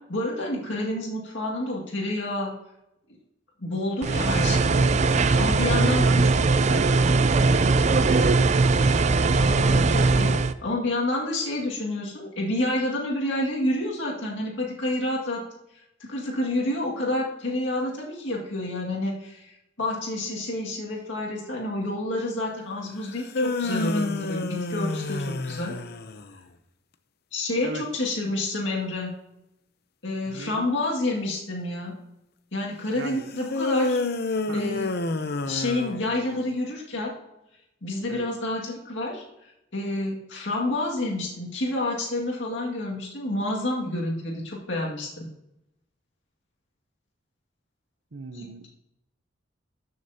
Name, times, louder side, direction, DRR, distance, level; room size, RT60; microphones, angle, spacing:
voice 1, 0.1-2.5 3.6-5.0 5.4-6.3 9.4-15.4 16.1-19.5 19.8-25.7 27.3-29.1 30.0-31.9 32.5-34.0 34.5-34.9 35.5-37.1 37.8-45.3 48.3-48.7, left 1 dB, 80° left, -2 dB, 2.1 m, -29 dB
sound 1, 4.0-10.5, right 3 dB, 40° right, 0.4 m, -20 dB
voice 2, 5.8-6.9 7.4-9.0 27.6-27.8 30.3-30.7 32.9-33.3 34.5-34.8 38.1-38.3 48.1-48.7, right 3 dB, 75° right, 10 dB, 0.8 m, -37 dB
sound 2, 23.1-26.3 33.5-36.4, left 2 dB, 55° left, 0.7 m, -28 dB
13.5 x 6.5 x 2.8 m, 0.87 s
head